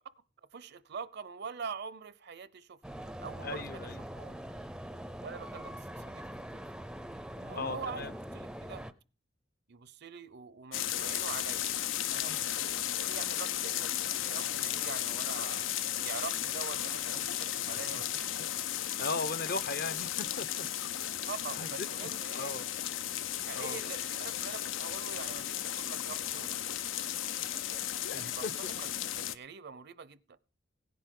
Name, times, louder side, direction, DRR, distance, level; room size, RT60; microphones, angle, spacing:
voice 1, 0.5-4.5 5.2-6.7 7.4-8.8 9.7-11.7 12.1-15.7 16.0-18.2 21.3-22.6 23.4-26.6 27.4-28.4 28.8-28.9 29.2-30.2, right 5 dB, 60° right, 0.6 m, -45 dB
sound 1, 2.8-8.9, equal, 5° right, 0.5 m, -43 dB
voice 2, 3.4-4.0 7.6-8.1 12.2-12.5 17.7-18.0 19.0-20.7 21.6-21.9 22.3-22.7 23.5-23.8 28.1-28.5, left 3 dB, 55° left, 0.8 m, -38 dB
sound 2, 10.7-29.3, left 11 dB, 85° left, 0.6 m, -35 dB
17.0 x 10.0 x 3.8 m
head